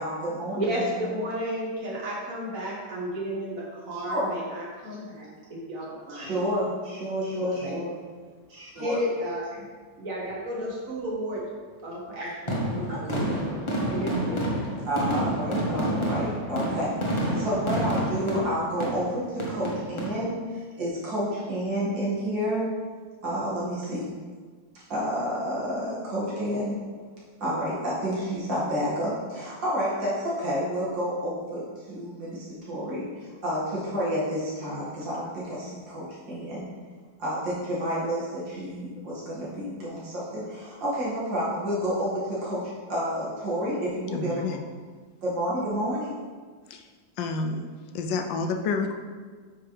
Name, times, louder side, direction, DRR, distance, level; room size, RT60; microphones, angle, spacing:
voice 1, 0.0-0.9 3.9-4.3 6.1-7.9 8.5-9.0 12.2-12.3 12.9-13.2 14.8-22.7 23.2-24.1 24.9-26.8 27.4-36.7 37.2-44.4 45.2-46.1, equal, 85° right, -8 dB, 2.9 m, -30 dB
voice 2, 0.5-6.4 7.6-7.8 8.8-9.6 10.0-11.4 11.8-14.4, equal, 50° right, -5 dB, 2.0 m, -33 dB
sound 1, 12.5-20.1, right 1 dB, 20° left, 0.8 m, -29 dB
voice 3, 44.1-44.6 46.7-46.8 47.2-47.6 47.9-48.9, left 4 dB, 85° left, 4 dB, 1.4 m, -29 dB
8.9 x 4.6 x 3.4 m, 1.5 s
omnidirectional pair, 2.0 m